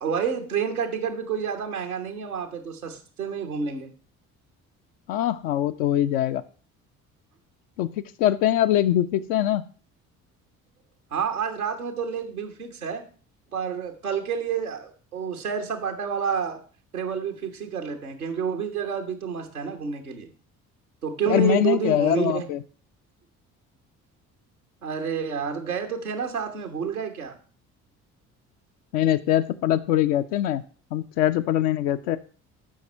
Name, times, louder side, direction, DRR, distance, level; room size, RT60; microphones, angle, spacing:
voice 1, 0.0-3.9 11.1-13.0 13.5-16.6 16.9-20.3 21.0-22.5 24.8-27.3, right 7 dB, 90° right, 3 dB, 1.2 m, -29 dB
voice 2, 5.1-6.4 7.8-7.9 8.2-9.6 21.3-22.6 28.9-30.6 30.9-32.2, left 12 dB, 70° left, 7 dB, 0.6 m, -22 dB
13.0 x 5.4 x 4.4 m, 0.40 s
figure-of-eight pair, 50°, 43 cm